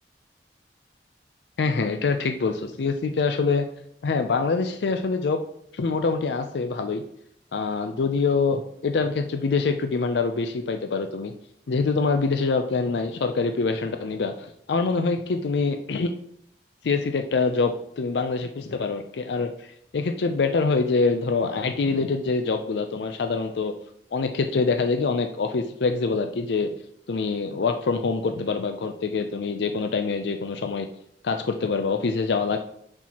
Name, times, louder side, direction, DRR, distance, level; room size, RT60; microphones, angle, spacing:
voice 1, 1.6-3.7 4.0-5.4 5.7-7.0 7.5-11.3 11.7-16.1 16.8-23.7 24.1-26.7 27.1-30.9 31.2-32.6, left 4 dB, 75° left, 6 dB, 0.4 m, -25 dB
10.0 x 4.4 x 2.9 m, 0.71 s
head